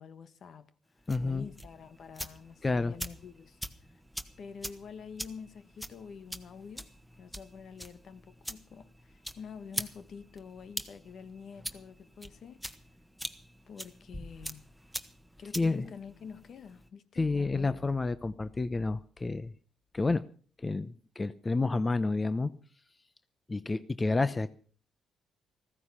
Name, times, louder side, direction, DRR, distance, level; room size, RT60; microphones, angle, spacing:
voice 1, 0.0-4.0 4.4-12.6 13.7-14.7 15.4-17.7, left 6 dB, 60° left, 1.3 m, -47 dB
sound 1, 1.0-16.9, equal, ahead, 1.4 m, -44 dB
voice 2, 1.1-1.4 2.6-2.9 15.6-15.9 17.2-19.5 19.9-20.2 20.6-22.5 23.5-24.5, left 3 dB, 25° left, 0.8 m, -29 dB
15.0 x 14.5 x 5.7 m
cardioid pair, 90°, 0 cm